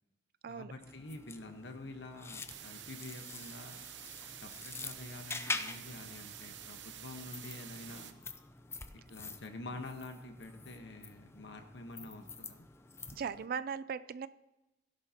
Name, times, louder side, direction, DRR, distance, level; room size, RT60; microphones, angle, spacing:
voice 1, 0.5-3.8 4.4-8.1 9.1-12.6, left 2 dB, 80° left, 5 dB, 1.2 m, -47 dB
sound 1, 0.8-13.5, left 3 dB, 15° left, 0.6 m, -46 dB
sound 2, 2.5-8.1, right 10 dB, 85° right, 0.8 m, -49 dB
voice 2, 13.1-14.3, right 6 dB, 55° right, 16 dB, 0.4 m, -38 dB
16.0 x 11.0 x 2.9 m, 0.99 s
head